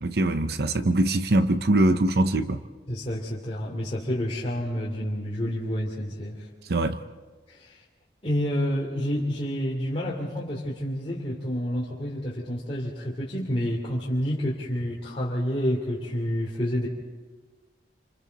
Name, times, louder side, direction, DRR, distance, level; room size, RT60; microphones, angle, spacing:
voice 1, 0.0-2.6 6.7-7.0, right 1 dB, 60° right, 0.7 m, -22 dB
voice 2, 2.9-6.5 7.5-7.8 8.2-16.9, equal, 30° left, 2.8 m, -29 dB
27.5 x 26.5 x 4.0 m
head